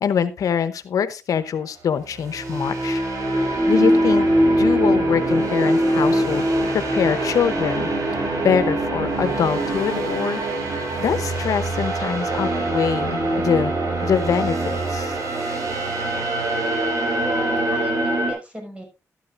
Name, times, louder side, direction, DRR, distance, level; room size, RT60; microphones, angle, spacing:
voice 1, 0.0-3.0 3.4-4.3 4.6-6.4 6.7-13.7 14.0-15.2, left 7 dB, 90° left, 12 dB, 0.8 m, -24 dB
sound 1, 2.1-18.3, right 1 dB, 80° right, 4.0 m, -22 dB
voice 2, 17.2-18.8, equal, 20° right, 2 dB, 5.5 m, -35 dB
12.5 x 11.5 x 2.5 m, 0.26 s
cardioid pair, 85°, 6 cm